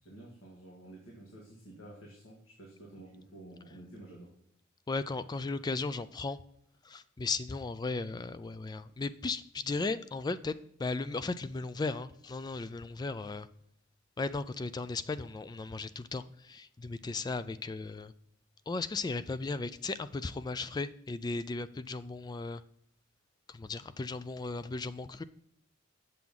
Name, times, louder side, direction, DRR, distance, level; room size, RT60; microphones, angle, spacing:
voice 1, 0.0-4.3, right 1 dB, 75° left, -3 dB, 2.0 m, -51 dB
voice 2, 4.9-6.4 6.8-13.5 14.2-18.1 18.7-22.6 23.5-25.2, left 3 dB, 20° left, 14 dB, 0.3 m, -36 dB
7.7 x 7.1 x 3.7 m, 0.72 s
head